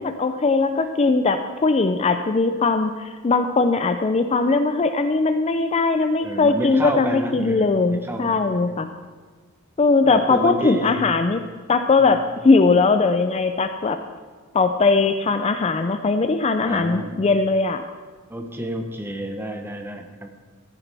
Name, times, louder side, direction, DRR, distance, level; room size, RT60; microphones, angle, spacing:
voice 1, 0.0-8.9 9.8-11.4 11.7-14.0 14.5-17.8, left 3 dB, 30° left, 8 dB, 0.4 m, -20 dB
voice 2, 6.2-8.7 10.0-11.0 12.0-12.2 16.6-17.2 18.3-20.3, right 1 dB, 10° right, 4 dB, 0.9 m, -30 dB
14.5 x 9.9 x 3.4 m, 1.5 s
head